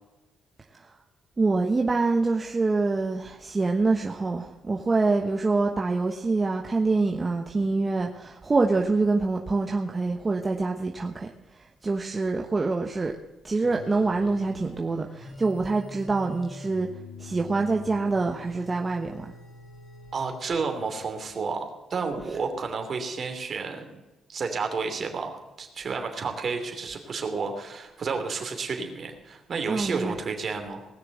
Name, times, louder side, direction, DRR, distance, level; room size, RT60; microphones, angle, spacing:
voice 1, 1.4-11.3 11.8-13.1 13.4-16.9 17.2-19.3 29.7-30.1, right 3 dB, 25° right, 1.1 m, -25 dB
sound 1, 13.6-21.1, left 2 dB, 80° left, 3.5 m, -44 dB
voice 2, 20.1-23.9 24.3-30.9, right 4 dB, 50° right, 2.9 m, -31 dB
19.0 x 6.7 x 7.8 m
cardioid pair, 90°, 0 cm